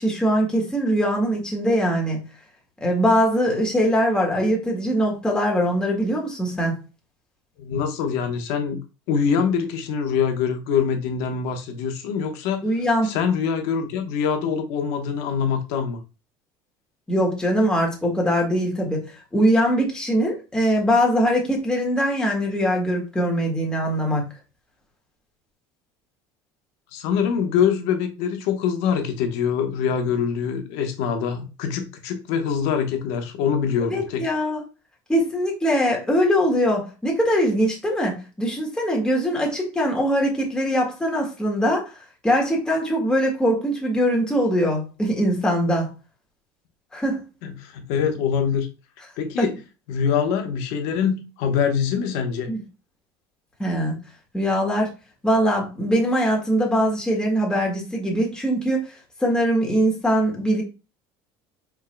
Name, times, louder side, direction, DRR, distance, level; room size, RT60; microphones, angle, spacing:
voice 1, 0.0-2.2 2.8-6.7 12.6-13.1 17.1-19.0 19.3-24.2 33.9-34.6 35.1-41.9 42.2-45.9 46.9-47.3 49.4-49.5 52.5-52.6 53.6-54.0 54.3-54.9 55.2-58.9 59.2-60.6, equal, 5° left, 1.6 m, -22 dB
voice 2, 7.6-8.8 9.1-12.7 13.0-16.0 26.9-34.2 47.4-48.7 49.2-49.6 49.9-52.5, left 7 dB, 80° left, 1.1 m, -24 dB
4.7 x 4.5 x 2.2 m
cardioid pair, 130°, 10 cm